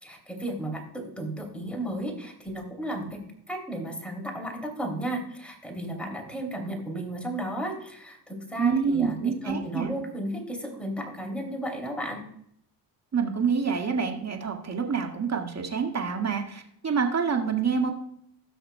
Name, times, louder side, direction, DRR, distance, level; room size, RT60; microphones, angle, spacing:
voice 1, 0.0-3.2 3.5-12.2, right 1 dB, 5° left, 1 dB, 3.1 m, -34 dB
voice 2, 8.6-9.9 13.1-17.9, right 6 dB, 35° right, 3 dB, 1.9 m, -27 dB
17.0 x 6.4 x 2.3 m, 0.71 s
cardioid pair, 85°, 45 cm